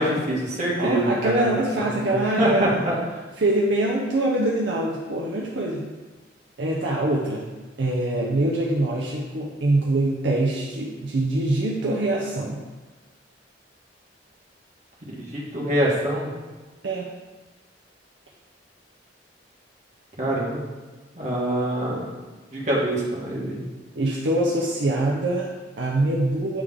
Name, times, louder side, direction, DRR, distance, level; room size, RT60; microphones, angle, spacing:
voice 1, 0.0-2.9 15.1-16.3 20.2-20.7 21.1-22.1 22.5-23.6, right 1 dB, 40° right, -5 dB, 1.5 m, -25 dB
voice 2, 0.8-2.9 3.4-5.9 6.6-7.5 7.8-12.6 16.8-17.1 24.0-26.6, right 1 dB, 65° right, -2 dB, 0.6 m, -24 dB
8.3 x 3.4 x 3.6 m, 1.3 s
head